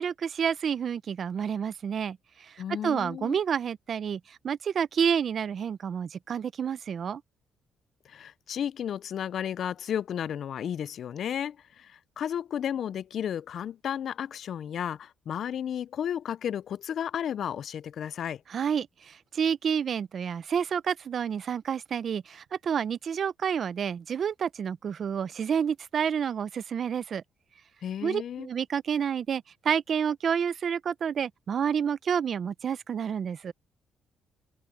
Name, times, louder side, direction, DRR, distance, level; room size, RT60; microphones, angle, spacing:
voice 1, 0.0-7.2 18.5-27.2 28.0-33.5, right 7 dB, 55° right, 0.6 m, -29 dB
voice 2, 2.6-3.4 8.1-18.4 27.8-28.5, left 9 dB, 65° left, 0.4 m, -33 dB
open air
cardioid pair, 90°, 0 cm